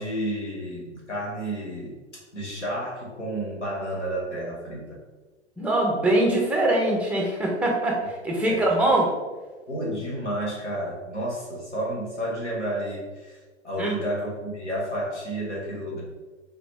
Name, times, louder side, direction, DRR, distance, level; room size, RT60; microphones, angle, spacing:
voice 1, 0.0-2.0 2.3-5.0 8.5-8.6 9.7-13.4 13.6-16.0, right 1 dB, 80° left, -5 dB, 1.3 m, -31 dB
voice 2, 5.6-8.0 8.2-9.1 13.8-13.9, right 1 dB, 5° right, -1 dB, 0.5 m, -22 dB
3.9 x 2.9 x 3.4 m, 1.3 s
figure-of-eight pair, 100°, 34 cm